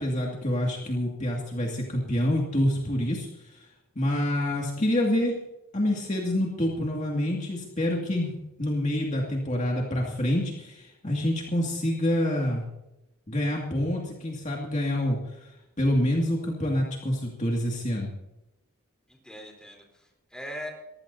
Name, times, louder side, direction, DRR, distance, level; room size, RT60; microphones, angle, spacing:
voice 1, 0.0-3.7 4.0-5.4 5.7-8.3 8.6-12.6 13.3-15.5 15.8-18.1, left 1 dB, 35° left, -1 dB, 2.2 m, -27 dB
voice 2, 19.1-20.7, equal, 5° left, 0 dB, 3.6 m, -41 dB
23.0 x 16.0 x 2.8 m, 0.90 s
head